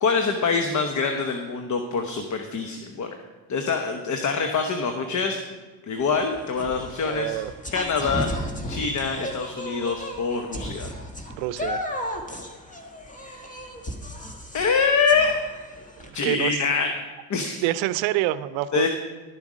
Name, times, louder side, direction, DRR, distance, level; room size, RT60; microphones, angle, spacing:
voice 1, 0.0-3.2 3.5-5.4 5.9-7.4 7.7-8.3 8.7-10.9 14.5-15.4 16.1-16.9 17.3-17.6 18.7-18.9, left 5 dB, 40° left, 5 dB, 1.0 m, -25 dB
sound 1, 6.0-16.1, equal, 15° left, 1.6 m, -35 dB
voice 2, 7.1-7.5 11.4-11.8 16.2-16.6 17.6-18.9, right 15 dB, 90° right, 15 dB, 0.6 m, -26 dB
12.0 x 7.2 x 5.1 m, 1.4 s
supercardioid pair, 85°, 44 cm